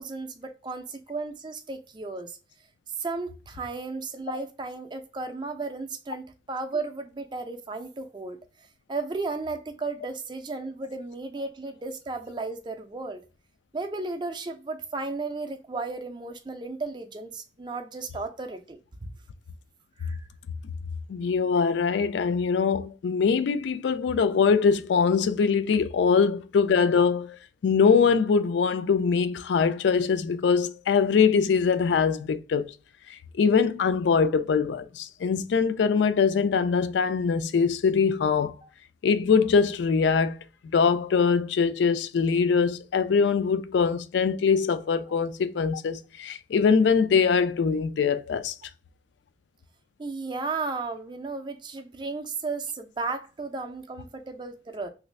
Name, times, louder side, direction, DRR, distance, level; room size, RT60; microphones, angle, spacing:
voice 1, 0.0-2.4 3.0-8.4 8.9-13.2 13.7-18.8 20.0-20.2 38.6-38.7 45.1-45.2 50.0-54.9, right 3 dB, 25° right, 0.4 m, -34 dB
voice 2, 21.1-27.4 27.6-32.7 33.1-38.5 39.0-40.4 40.7-48.6, left 5 dB, 75° left, 0.3 m, -23 dB
3.2 x 2.5 x 3.1 m
head